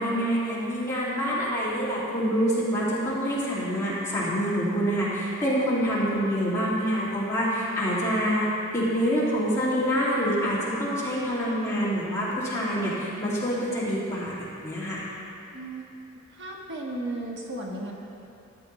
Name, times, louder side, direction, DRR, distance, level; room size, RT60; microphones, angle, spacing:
voice 1, 0.0-8.5 8.7-15.1, equal, 15° left, -9 dB, 2.3 m, -26 dB
voice 2, 15.5-15.9 16.4-17.9, right 1 dB, 55° right, -2 dB, 1.3 m, -34 dB
14.0 x 9.7 x 3.2 m, 2.8 s
head